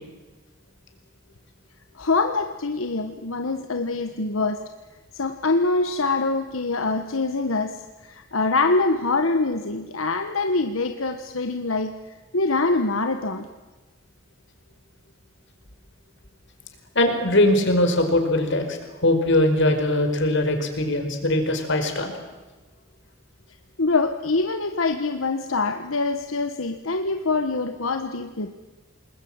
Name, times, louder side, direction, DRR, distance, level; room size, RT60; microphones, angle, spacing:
voice 1, 2.0-4.6 5.1-12.0 12.3-13.5 23.8-28.5, left 3 dB, 90° left, 6 dB, 1.4 m, -24 dB
voice 2, 16.9-22.1, left 1 dB, 65° left, 6 dB, 4.8 m, -21 dB
28.0 x 21.0 x 8.9 m, 1.2 s
head